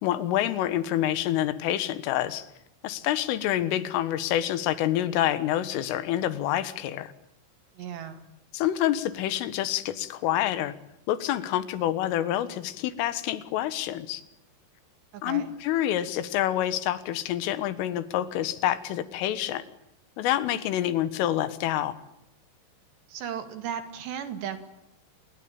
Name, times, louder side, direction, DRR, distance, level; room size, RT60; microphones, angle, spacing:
voice 1, 0.0-2.5 2.8-7.1 8.5-10.7 11.1-14.2 15.2-19.6 20.2-21.9, left 12 dB, 90° left, 14 dB, 4.0 m, -27 dB
voice 2, 7.7-8.2 15.1-15.5 23.1-24.6, right 8 dB, 65° right, 9 dB, 4.2 m, -36 dB
29.0 x 21.5 x 8.8 m, 0.81 s
omnidirectional pair, 5.6 m